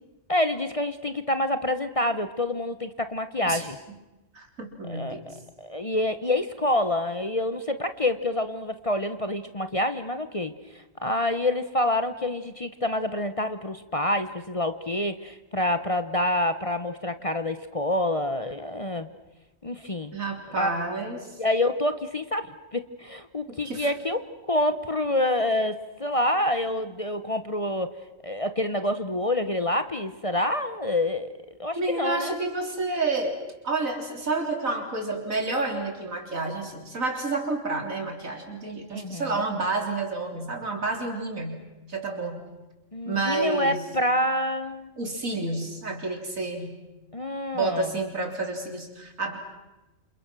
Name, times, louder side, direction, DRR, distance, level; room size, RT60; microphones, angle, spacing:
voice 1, 0.3-3.8 4.9-10.5 11.0-19.1 19.6-20.2 20.6-20.7 21.4-24.2 24.5-27.9 28.2-31.3 31.6-32.4 38.9-39.4 42.9-44.9 47.1-47.9, left 1 dB, 30° left, 10 dB, 0.9 m, -27 dB
voice 2, 3.5-4.0 4.3-5.2 20.1-21.4 23.5-23.9 31.8-41.6 41.9-42.4 43.1-43.9 45.0-46.8 47.5-49.4, right 3 dB, 80° right, 3 dB, 4.2 m, -30 dB
28.5 x 27.5 x 6.2 m, 1.1 s
omnidirectional pair, 1.4 m